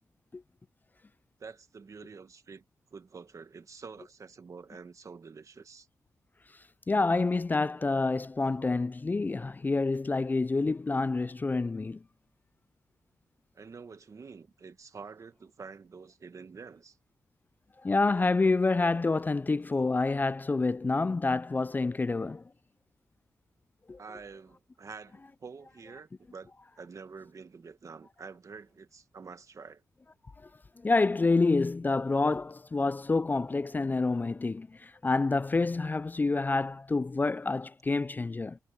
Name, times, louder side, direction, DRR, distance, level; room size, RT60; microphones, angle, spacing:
voice 1, 1.4-2.6 2.9-5.9 13.5-17.0 24.0-29.8, right 5 dB, 50° right, 1.6 m, -47 dB
voice 2, 6.9-12.0 17.8-22.4 23.9-24.0 30.4-30.5 30.8-38.6, left 3 dB, 25° left, 0.4 m, -28 dB
cardioid pair, 65°, 7 cm